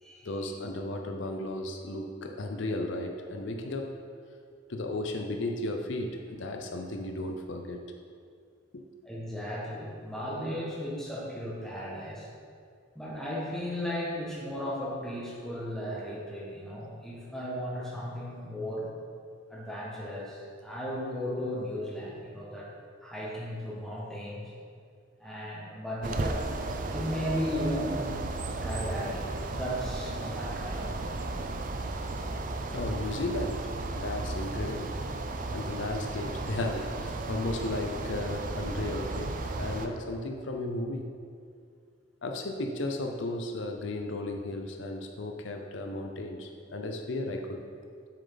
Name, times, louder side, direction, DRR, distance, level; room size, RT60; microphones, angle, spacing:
voice 1, 0.2-3.9 4.7-7.8 8.7-8.8 32.7-33.7 34.0-35.0 35.5-41.1 42.2-47.6, left 2 dB, 70° left, 3 dB, 0.6 m, -34 dB
voice 2, 9.0-12.3 12.9-18.9 19.5-22.7 23.0-24.5 25.2-26.5 26.9-28.3 28.6-31.3, equal, ahead, -6 dB, 1.5 m, -35 dB
sound 1, 26.0-39.9, right 2 dB, 45° right, 0.5 m, -34 dB
7.4 x 6.7 x 4.0 m, 2.2 s
head